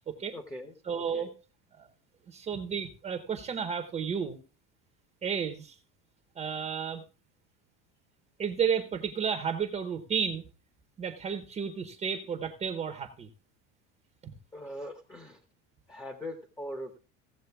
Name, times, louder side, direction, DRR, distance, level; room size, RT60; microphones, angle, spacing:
voice 1, 0.3-0.7 1.1-1.3 14.5-15.4 15.9-17.0, equal, 10° left, 5 dB, 0.9 m, -41 dB
voice 2, 0.8-1.3 1.8-1.9 2.3-4.4 5.2-5.8 6.4-7.0 8.4-10.4 11.0-13.3, right 7 dB, 20° right, 5 dB, 0.8 m, -32 dB
16.0 x 7.5 x 3.5 m, 0.35 s
cardioid pair, 170°, 34 cm